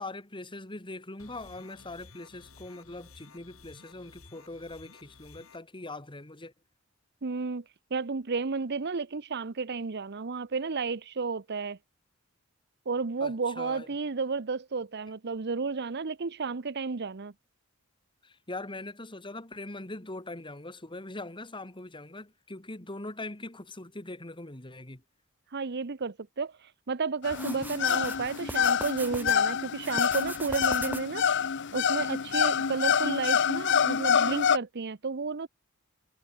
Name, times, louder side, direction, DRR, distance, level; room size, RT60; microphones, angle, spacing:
voice 1, 0.0-6.5 13.2-13.9 18.2-25.0, left 2 dB, 25° left, 2.4 m, -41 dB
sound 1, 1.2-5.6, left 4 dB, 75° left, 2.1 m, -54 dB
voice 2, 7.2-7.6 7.9-11.8 12.9-17.3 25.5-31.2 31.7-35.5, right 4 dB, 55° right, 0.8 m, -32 dB
sound 2, 27.2-34.6, left 7 dB, 60° left, 0.8 m, -27 dB
sound 3, 27.3-29.4 29.8-31.3, right 2 dB, 10° right, 0.6 m, -40 dB
head